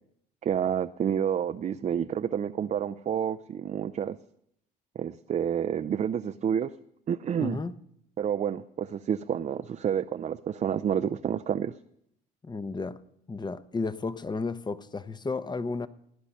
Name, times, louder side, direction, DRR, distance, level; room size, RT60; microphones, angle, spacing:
voice 1, 0.4-4.2 5.0-6.7 7.1-7.6 8.2-11.7, right 8 dB, 35° right, 10 dB, 0.5 m, -29 dB
voice 2, 7.4-7.7 12.4-13.0 13.3-15.9, left 4 dB, 20° left, 14 dB, 0.9 m, -33 dB
17.5 x 10.0 x 5.5 m, 0.74 s
hypercardioid pair, 65°, 20 cm